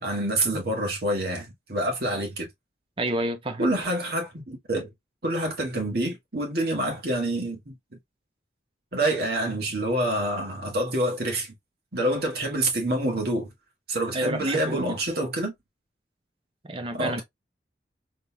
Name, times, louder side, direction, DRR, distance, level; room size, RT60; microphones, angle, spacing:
voice 1, 0.0-2.5 3.6-4.9 5.2-7.7 8.9-11.5 11.9-13.5 13.9-15.5 17.0-17.2, right 1 dB, 55° right, 1.6 m, -27 dB
voice 2, 3.0-3.7 14.1-15.0 16.7-17.2, right 1 dB, 30° right, 0.7 m, -29 dB
3.9 x 3.3 x 2.2 m
head